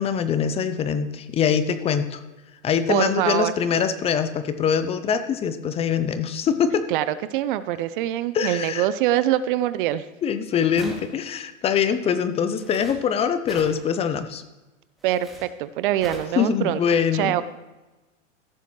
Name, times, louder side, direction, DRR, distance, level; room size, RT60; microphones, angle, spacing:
voice 1, 0.0-2.2 2.6-6.9 8.3-8.9 10.2-14.4 16.4-17.4, left 7 dB, 15° left, 11 dB, 0.5 m, -23 dB
voice 2, 2.9-3.5 6.9-10.0 15.0-16.8 17.1-17.4, right 13 dB, 45° right, 15 dB, 0.5 m, -24 dB
sound 1, 10.8-11.3 12.5-13.0 13.5-13.8 15.0-15.4 16.0-16.4, equal, ahead, 2.1 m, -40 dB
15.0 x 6.8 x 3.1 m, 1.1 s
hypercardioid pair, 120°, 40 cm